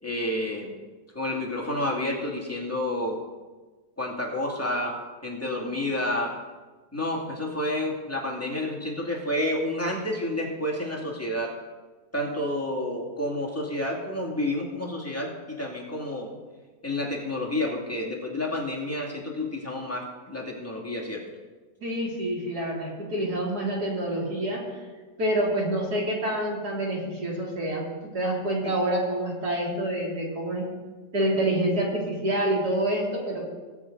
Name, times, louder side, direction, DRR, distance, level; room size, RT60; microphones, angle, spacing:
voice 1, 0.0-0.7 1.1-3.2 4.0-5.0 5.2-6.3 6.9-11.6 12.1-16.3 16.8-21.2 28.6-28.7, left 1 dB, 10° left, -3 dB, 2.3 m, -30 dB
voice 2, 21.8-24.6 25.2-27.9 28.1-30.7 31.1-33.5, right 1 dB, 65° right, -3 dB, 3.4 m, -27 dB
18.5 x 7.8 x 3.9 m, 1.3 s
omnidirectional pair, 1.9 m